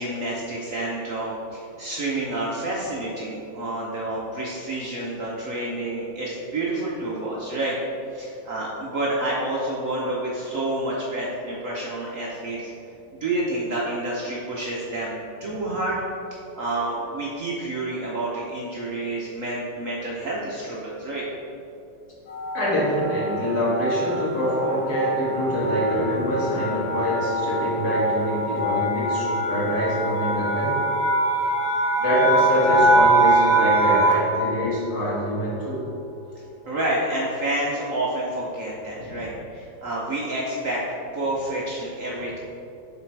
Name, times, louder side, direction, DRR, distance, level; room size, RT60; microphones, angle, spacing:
voice 1, 0.0-7.8 8.1-12.7 13.1-16.0 16.6-21.2 36.7-40.8 41.1-42.4, right 1 dB, 55° right, -5 dB, 1.0 m, -29 dB
sound 1, 22.3-34.4, right 2 dB, 80° left, 1.8 m, -23 dB
voice 2, 22.5-30.7 32.0-35.8, equal, 55° left, -7 dB, 2.2 m, -24 dB
7.3 x 4.1 x 4.6 m, 2.7 s
omnidirectional pair, 2.1 m